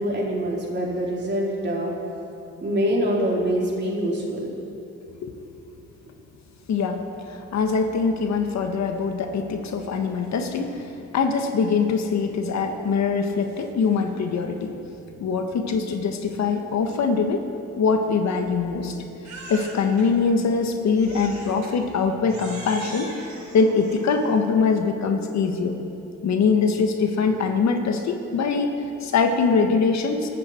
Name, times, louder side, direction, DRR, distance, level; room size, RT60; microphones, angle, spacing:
voice 1, 0.0-1.9 2.6-4.4, equal, 35° right, -3 dB, 4.5 m, -24 dB
voice 2, 6.7-7.0 7.3-14.8 15.2-17.4 17.8-19.0 19.5-23.1 23.5-25.7 26.2-30.3, left 5 dB, 65° left, 5 dB, 1.6 m, -23 dB
Crying sobbing, 19.2-20.1 21.0-21.7 22.3-24.4, right 3 dB, 65° right, 4.0 m, -41 dB
24.0 x 13.0 x 4.5 m, 3.0 s
cardioid pair, 90°, 30 cm